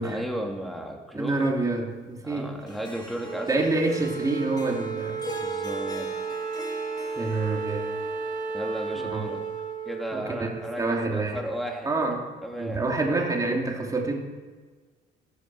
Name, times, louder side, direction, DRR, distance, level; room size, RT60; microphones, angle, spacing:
voice 1, 0.0-1.5 2.2-3.5 5.4-6.1 8.5-9.4 9.8-11.9 12.4-12.8, equal, ahead, 1 dB, 2.9 m, -34 dB
voice 2, 1.1-2.5 3.5-5.2 7.2-7.8 9.0-9.2 10.1-11.4 11.8-12.3 12.6-14.1, right 2 dB, 20° right, 0 dB, 2.9 m, -27 dB
Harp, 2.7-9.0, equal, 25° left, 2.5 m, -42 dB
Wind instrument woodwind instrument, 3.2-11.8, right 5 dB, 50° right, 1.8 m, -34 dB
14.0 x 13.5 x 6.3 m, 1.4 s
cardioid pair, 110°, 17 cm